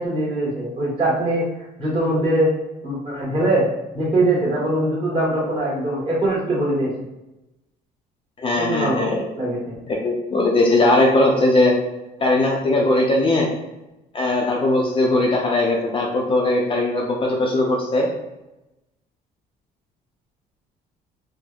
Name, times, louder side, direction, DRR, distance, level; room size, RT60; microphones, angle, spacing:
voice 1, 0.0-1.5 1.8-2.5 2.8-3.7 3.9-6.9 8.6-9.0 9.4-9.8, right 1 dB, 30° right, -6 dB, 1.2 m, -22 dB
voice 2, 8.4-9.2 10.0-11.7 12.2-13.5 14.1-18.1, left 2 dB, 30° left, -1 dB, 0.5 m, -19 dB
3.2 x 2.0 x 2.3 m, 0.96 s
cardioid pair, 110°, 17 cm